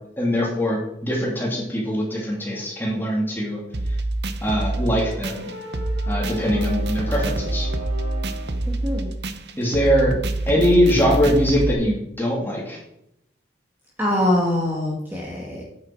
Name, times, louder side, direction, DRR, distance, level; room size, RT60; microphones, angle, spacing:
voice 1, 0.2-3.6 4.4-5.5 6.1-7.7 9.6-10.1 10.5-12.8, equal, 10° left, -2 dB, 2.7 m, -22 dB
sound 1, 3.7-11.7, right 2 dB, 55° right, 0.8 m, -26 dB
sound 2, 4.7-8.7, left 1 dB, 35° right, 3.1 m, -36 dB
voice 2, 8.7-9.1 14.0-15.6, left 1 dB, 10° right, -4 dB, 2.0 m, -23 dB
8.9 x 8.0 x 4.7 m, 0.79 s
head